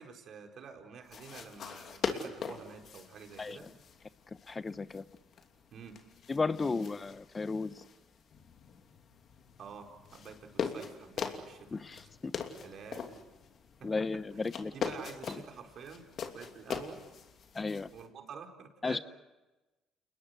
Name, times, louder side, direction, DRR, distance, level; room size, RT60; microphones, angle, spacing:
voice 1, 0.0-3.7 5.7-6.0 6.5-6.9 9.6-11.8 12.6-13.2 13.8-14.0 14.3-14.5 14.7-17.0 17.9-19.0, right 6 dB, 60° right, 3 dB, 4.5 m, -49 dB
sound 1, 1.0-18.1, left 6 dB, 55° left, 2.9 m, -42 dB
voice 2, 4.5-5.0 6.3-7.7 11.7-12.0 13.8-14.7 17.5-17.9 18.8-19.0, left 4 dB, 30° left, 15 dB, 0.9 m, -34 dB
30.0 x 20.0 x 8.1 m, 1.1 s
hypercardioid pair, 60°, 0 cm